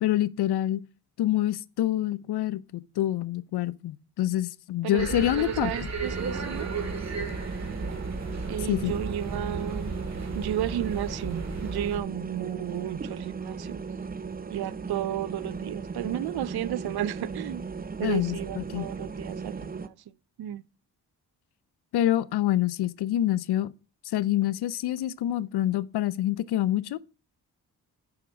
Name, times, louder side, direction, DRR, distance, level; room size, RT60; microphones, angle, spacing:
voice 1, 0.0-0.8 1.2-5.9 8.7-8.9 18.0-18.9 21.9-23.7 24.0-27.0, left 13 dB, 75° left, 0.6 m, -26 dB
sound 1, 5.0-12.0, right 4 dB, 40° right, 2.0 m, -34 dB
voice 2, 5.4-6.7 8.5-10.0 10.3-13.8 14.5-17.7 18.0-19.9 20.4-20.6, right 11 dB, 70° right, 0.6 m, -33 dB
sound 2, 6.0-19.9, right 5 dB, 20° right, 0.7 m, -37 dB
7.3 x 5.8 x 6.1 m
cardioid pair, 60°, 40 cm